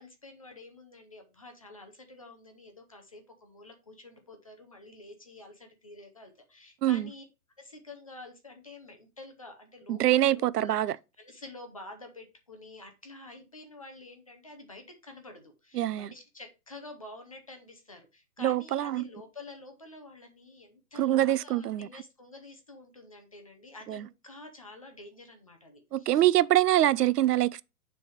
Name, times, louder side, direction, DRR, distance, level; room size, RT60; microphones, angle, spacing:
voice 1, 0.0-7.2 7.6-10.9 11.2-26.2, left 2 dB, 25° left, 0.5 m, -49 dB
voice 2, 9.9-11.0 15.7-16.1 18.4-19.0 21.0-21.9 23.9-24.1 25.9-27.6, right 13 dB, 80° right, 0.5 m, -24 dB
6.8 x 3.4 x 4.7 m
hypercardioid pair, 160°, 47 cm